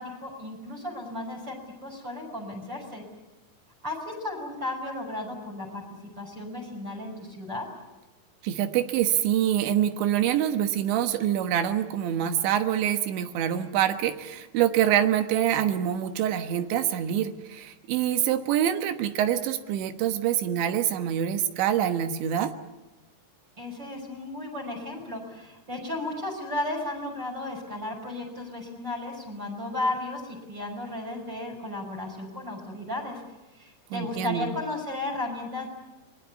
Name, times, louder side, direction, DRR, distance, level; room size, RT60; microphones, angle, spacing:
voice 1, 0.0-3.0 3.8-7.7 23.6-33.2 33.6-35.7, left 2 dB, 25° right, 4 dB, 6.1 m, -34 dB
voice 2, 8.4-22.5 33.9-34.5, right 10 dB, 80° right, 9 dB, 3.6 m, -25 dB
27.5 x 21.5 x 8.3 m, 1.1 s
omnidirectional pair, 5.1 m